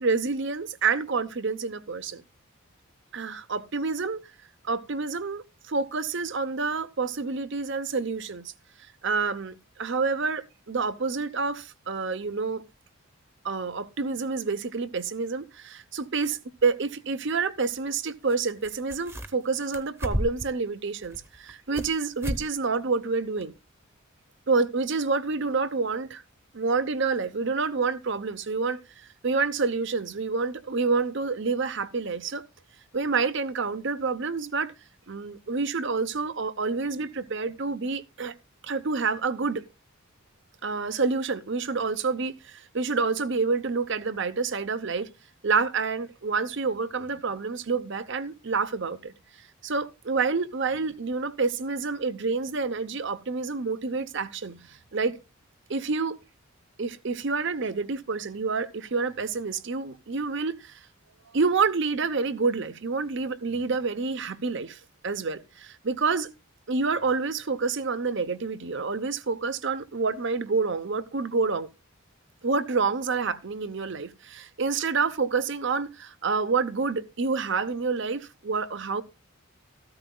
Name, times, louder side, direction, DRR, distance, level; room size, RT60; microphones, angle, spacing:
voice 1, 0.0-2.2 3.1-4.2 4.6-8.5 9.0-12.6 13.4-23.5 24.5-26.2 26.5-32.4 32.9-34.7 35.1-38.3 38.6-39.6 40.6-45.1 45.4-49.1 49.6-55.2 55.7-56.2 56.8-60.8 61.3-66.3 66.7-71.7 72.4-79.0, right 4 dB, 55° right, 0.8 m, -28 dB
sound 1, 16.6-16.7 18.3-18.4 18.6-19.4 19.7-20.5 21.0-21.9 22.2-22.5 22.8-22.9 23.4-23.5, equal, 10° right, 0.8 m, -32 dB
14.0 x 13.0 x 2.3 m
head